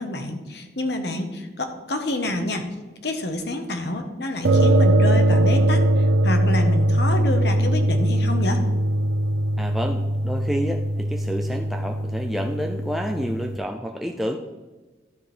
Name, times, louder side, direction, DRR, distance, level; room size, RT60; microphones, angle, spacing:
voice 1, 0.0-2.6 3.0-8.6, left 1 dB, 70° left, 5 dB, 1.2 m, -28 dB
sound 1, 4.4-13.6, right 1 dB, 75° right, 0.5 m, -21 dB
voice 2, 9.6-14.4, equal, ahead, 2 dB, 0.4 m, -29 dB
12.0 x 5.2 x 4.4 m, 1.2 s
head